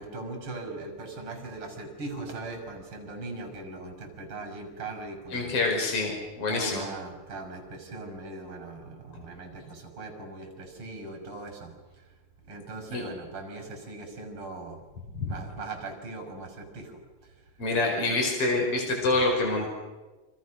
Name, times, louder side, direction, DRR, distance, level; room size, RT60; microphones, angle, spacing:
voice 1, 0.0-5.5 6.5-12.0 12.5-14.8 15.2-17.3, right 2 dB, 35° right, 5 dB, 6.7 m, -40 dB
voice 2, 5.3-6.9 12.9-13.0 15.1-15.3 17.6-19.7, left 2 dB, 40° left, 1 dB, 5.8 m, -26 dB
29.5 x 26.5 x 6.4 m, 1.2 s
omnidirectional pair, 4.1 m